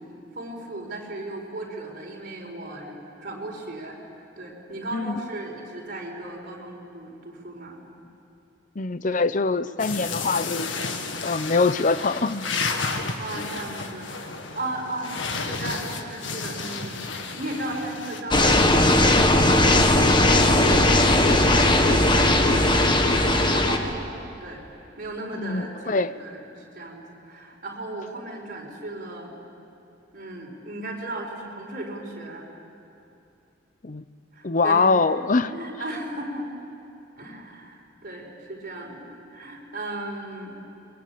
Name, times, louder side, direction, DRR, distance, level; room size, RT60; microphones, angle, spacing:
voice 1, 0.0-4.0 4.4-7.8 13.2-15.1 15.4-22.6 23.2-24.1 24.4-24.6 25.0-29.3 30.1-32.5 34.3-34.8 35.5-36.5 37.2-39.0 39.3-40.5, right 2 dB, 50° right, -1 dB, 4.9 m, -36 dB
voice 2, 4.9-5.2 8.8-10.7 11.2-12.5 25.4-26.1 33.8-34.1 34.4-35.5, left 3 dB, 40° left, 13 dB, 0.7 m, -23 dB
sound 1, 9.8-18.2, left 4 dB, 75° left, 1.8 m, -32 dB
sound 2, 18.3-23.8, left 1 dB, 25° left, 1.6 m, -18 dB
23.5 x 22.5 x 8.7 m, 2.9 s
head